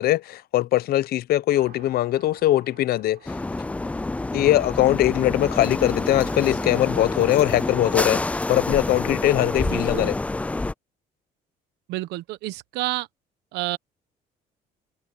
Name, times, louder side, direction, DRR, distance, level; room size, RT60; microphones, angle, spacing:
voice 1, 0.0-3.4 4.3-8.2 8.5-10.2, left 14 dB, 65° left, 0.7 m, -21 dB
sound 1, 1.5-7.1, right 12 dB, 65° right, 7.5 m, -51 dB
sound 2, 3.3-10.7, left 2 dB, 10° left, 0.3 m, -27 dB
voice 2, 9.6-10.1 11.9-13.1 13.5-13.8, right 17 dB, 90° right, 1.1 m, -29 dB
cardioid pair, 110°, 17 cm